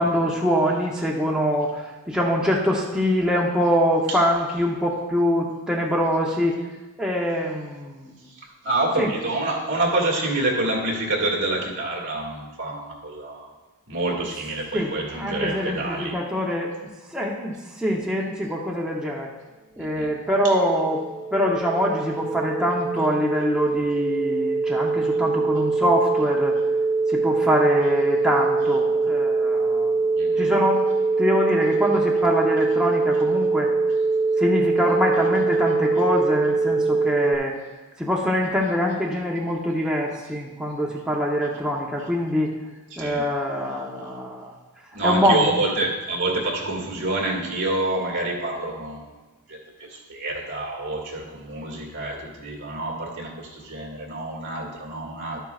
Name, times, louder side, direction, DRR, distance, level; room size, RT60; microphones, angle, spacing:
voice 1, 0.0-6.6 7.0-8.1 9.0-9.1 14.7-16.7 17.1-19.3 19.8-21.0 21.3-26.6 27.1-29.9 30.4-30.8 31.2-33.7 34.4-37.5 38.0-42.5 43.0-44.5 45.0-45.5, equal, 5° right, -3 dB, 0.8 m, -24 dB
voice 2, 8.3-13.5 13.9-16.2 19.8-20.1 20.4-20.5 30.2-30.5 35.7-36.1 42.9-43.3 44.9-49.1 49.5-55.4, right 2 dB, 55° right, -2 dB, 2.0 m, -27 dB
sound 1, 20.4-37.3, right 3 dB, 25° right, 1.0 m, -23 dB
12.0 x 8.9 x 2.4 m, 1.2 s
head